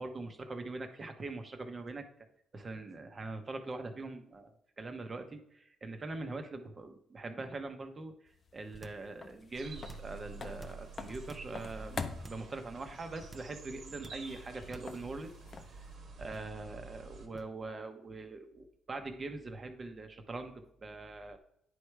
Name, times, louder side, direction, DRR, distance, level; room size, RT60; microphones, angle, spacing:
voice 1, 0.0-2.0 2.5-8.1 8.5-15.3 16.2-21.4, right 3 dB, 35° right, 6 dB, 1.0 m, -42 dB
sound 1, 8.3-16.0, left 4 dB, 40° left, 0.6 m, -47 dB
sound 2, 8.7-9.1 9.7-10.2 10.6-11.6 12.2-12.5 13.2-13.6 14.0-14.3 14.6-15.0 16.2-16.6 17.3-17.6, right 1 dB, 20° right, 0.6 m, -51 dB
sound 3, 9.5-17.3, right 4 dB, 65° right, 1.4 m, -49 dB
9.6 x 3.3 x 4.7 m, 0.74 s
cardioid pair, 90°, 0 cm